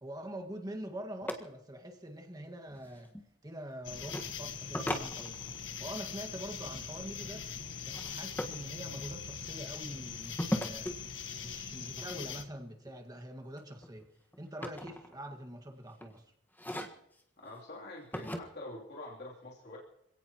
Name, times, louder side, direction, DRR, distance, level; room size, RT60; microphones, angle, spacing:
voice 1, 0.0-3.1 3.4-5.4 5.8-7.5 7.8-10.9 11.4-14.1 14.4-16.2, right 1 dB, 20° right, 4 dB, 1.8 m, -44 dB
sound 1, 1.2-1.4 2.7-3.2 4.1-4.3 4.7-5.7 7.9-8.6 10.4-11.0 12.9-13.2 13.6-15.5 15.9-16.1 16.5-17.2 18.1-18.4, equal, 10° left, 1.6 m, -37 dB
sound 2, 3.8-12.4, left 7 dB, 85° left, 1.5 m, -42 dB
voice 2, 17.4-19.8, left 2 dB, 60° left, -4 dB, 3.3 m, -46 dB
26.5 x 17.5 x 3.0 m, 0.78 s
head